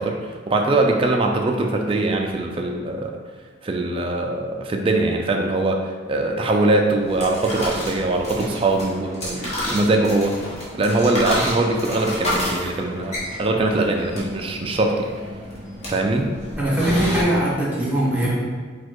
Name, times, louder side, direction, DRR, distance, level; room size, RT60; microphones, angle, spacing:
voice 1, 0.0-3.2 3.6-10.4 10.7-15.1 15.9-16.3, right 2 dB, 30° right, 2 dB, 0.3 m, -22 dB
sound 1, 6.9-17.2, left 1 dB, 35° left, 1.1 m, -30 dB
voice 2, 16.6-18.3, right 1 dB, 10° right, -6 dB, 1.0 m, -21 dB
4.1 x 2.3 x 4.5 m, 1.6 s
head